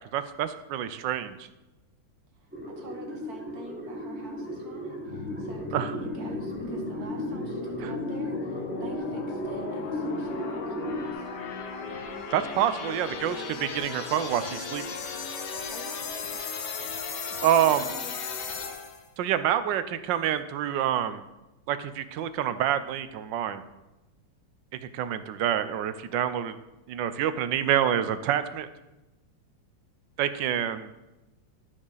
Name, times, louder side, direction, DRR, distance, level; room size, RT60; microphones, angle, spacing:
voice 1, 0.1-1.5 5.7-5.9 12.3-14.8 17.4-17.8 19.2-21.3 21.7-23.6 24.9-26.6 26.9-28.7 30.2-30.9, right 10 dB, 85° right, 12 dB, 1.3 m, -27 dB
voice 2, 2.3-11.4 15.7-16.0 17.4-18.4, right 3 dB, 55° right, 2 dB, 1.7 m, -46 dB
sound 1, 2.5-11.1, equal, 5° right, 1.0 m, -35 dB
sound 2, 5.1-19.1, left 5 dB, 65° left, 1.6 m, -36 dB
12.5 x 6.2 x 3.9 m, 1.0 s
omnidirectional pair, 2.0 m